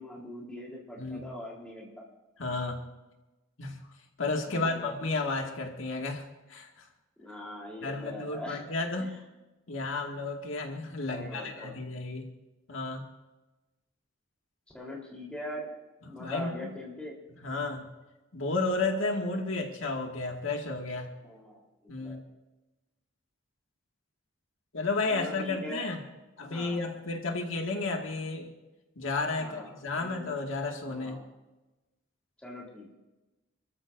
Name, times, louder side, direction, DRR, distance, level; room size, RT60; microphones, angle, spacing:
voice 1, 0.0-2.1 4.5-5.0 7.2-8.7 9.0-9.2 11.1-11.7 14.7-15.7 16.1-17.2 21.2-22.2 25.1-25.9 26.4-26.8 29.4-30.3 30.8-31.3 32.4-32.9, left 1 dB, 5° left, -3 dB, 3.7 m, -42 dB
voice 2, 2.4-2.8 3.6-3.8 4.2-6.2 6.5-6.9 7.8-9.1 9.7-12.3 12.7-13.1 16.2-16.7 17.4-17.9 18.3-21.1 21.9-22.2 24.7-26.0 26.4-28.5 29.0-31.2, left 3 dB, 85° left, 1 dB, 2.1 m, -32 dB
27.5 x 14.0 x 2.6 m, 1.1 s
head